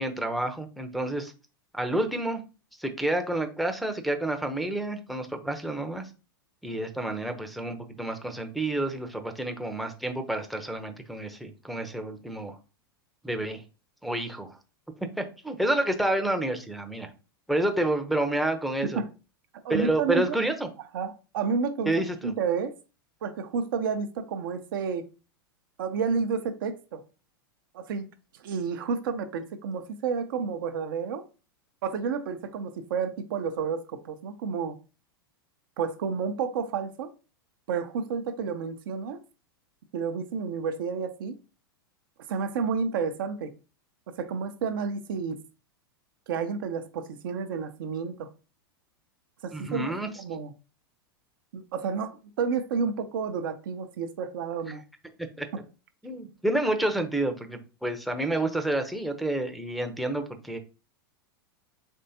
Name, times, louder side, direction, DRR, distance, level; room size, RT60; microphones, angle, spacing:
voice 1, 0.0-1.3 1.7-2.4 2.8-6.1 6.6-12.6 13.2-13.6 14.0-14.5 15.2-17.1 17.5-19.0 19.7-20.7 21.9-22.3 49.5-50.1 55.4-55.5 56.0-60.6, right 1 dB, ahead, 0.6 m, -29 dB
voice 2, 19.6-20.4 20.9-21.9 22.2-22.7 23.2-25.1 25.8-27.0 27.7-28.1 28.4-31.2 31.8-34.8 35.8-37.1 37.7-39.2 39.9-41.4 42.3-43.5 44.2-45.4 46.3-48.3 49.4-50.5 51.5-54.8 55.5-55.6, right 5 dB, 60° right, 0.5 m, -30 dB
4.4 x 3.2 x 2.7 m
hypercardioid pair, 95°, 13 cm